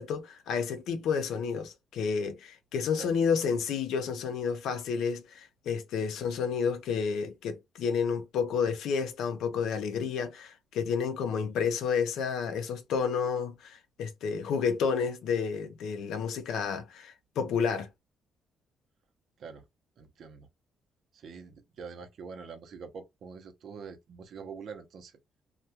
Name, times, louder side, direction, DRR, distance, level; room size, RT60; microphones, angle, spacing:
voice 1, 0.0-17.9, left 6 dB, 90° left, 0.6 m, -30 dB
voice 2, 20.0-20.5 21.1-25.1, right 5 dB, 60° right, 0.6 m, -45 dB
2.2 x 2.2 x 2.8 m
cardioid pair, 135°, 0 cm